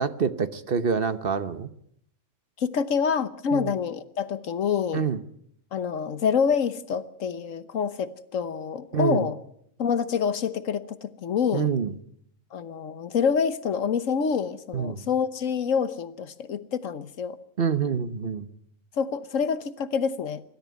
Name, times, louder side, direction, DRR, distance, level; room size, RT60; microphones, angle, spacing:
voice 1, 0.0-1.7 3.5-3.7 4.9-5.2 8.9-9.3 11.5-11.9 14.7-15.0 17.6-18.5, right 6 dB, 50° right, 12 dB, 1.2 m, -26 dB
voice 2, 2.6-5.0 5.7-9.4 9.8-11.7 12.5-17.4 19.0-20.4, left 6 dB, 85° left, 13 dB, 1.4 m, -27 dB
25.0 x 13.5 x 9.5 m, 0.71 s
omnidirectional pair, 1.3 m